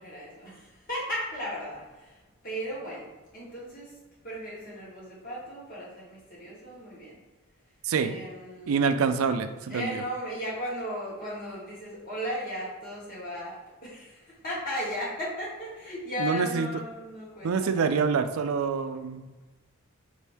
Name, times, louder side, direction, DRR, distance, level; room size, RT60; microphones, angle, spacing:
voice 1, 0.0-2.2 2.4-3.1 3.3-3.9 4.2-7.2 8.0-8.9 9.7-18.0, equal, 45° left, -7 dB, 1.5 m, -36 dB
voice 2, 7.8-8.2 8.7-10.0 16.2-16.7 17.4-19.3, right 5 dB, 85° right, 9 dB, 0.4 m, -26 dB
5.3 x 2.7 x 3.4 m, 1.2 s
head